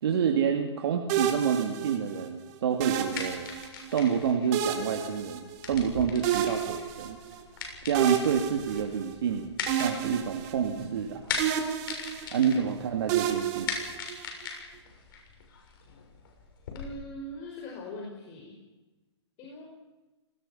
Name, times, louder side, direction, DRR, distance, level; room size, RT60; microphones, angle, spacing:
voice 1, 0.0-3.5 3.9-7.2 7.8-9.5 9.8-11.2 12.3-13.7, right 7 dB, 60° right, 3 dB, 2.8 m, -28 dB
sound 1, 1.1-2.3 2.8-3.9 4.5-5.9 6.2-7.4 7.9-9.3 9.7-11.1 11.4-12.6 13.1-14.5, right 9 dB, 35° right, 3.4 m, -31 dB
sound 2, 2.8-16.9, left 5 dB, 50° left, 7.0 m, -40 dB
voice 2, 16.7-18.6 19.4-19.7, left 1 dB, 30° left, -1 dB, 5.4 m, -41 dB
29.0 x 19.5 x 5.8 m, 1.2 s
hypercardioid pair, 145°, 15 cm